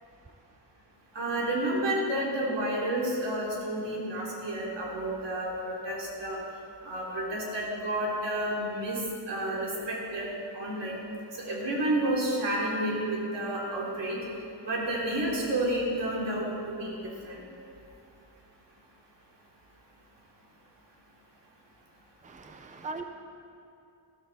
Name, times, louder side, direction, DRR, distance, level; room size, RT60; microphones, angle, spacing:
voice 1, 1.1-6.4 6.8-9.0 9.3-10.3 10.5-11.0 11.4-14.2 14.6-16.9 17.2-17.3, right 1 dB, 80° right, -4 dB, 3.2 m, -30 dB
voice 2, 22.2-23.0, right 3 dB, 20° right, 6 dB, 0.6 m, -39 dB
14.0 x 13.5 x 4.1 m, 2.7 s
wide cardioid pair, 155°, 42 cm